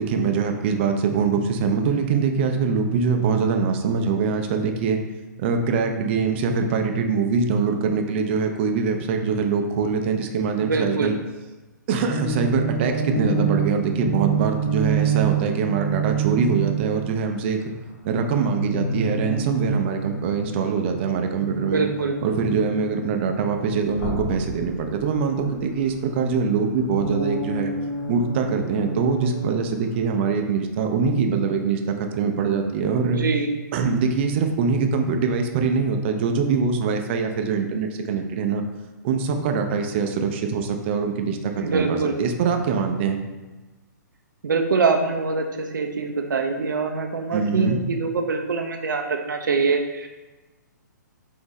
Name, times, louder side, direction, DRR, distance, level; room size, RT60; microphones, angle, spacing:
voice 1, 0.0-5.0 5.4-11.2 11.9-17.6 18.0-21.9 22.2-27.7 28.1-33.2 33.7-38.6 39.0-43.2 47.3-47.8, right 5 dB, 35° right, 5 dB, 0.4 m, -23 dB
voice 2, 10.6-11.1 21.6-22.1 33.0-33.5 41.6-42.2 44.4-50.1, right 4 dB, 80° right, 4 dB, 0.5 m, -24 dB
sound 1, 12.1-17.2 18.4-23.5 23.9-25.9 26.3-30.3, right 5 dB, 40° left, 1.1 m, -28 dB
5.3 x 2.6 x 3.1 m, 1.2 s
hypercardioid pair, 145°, 10 cm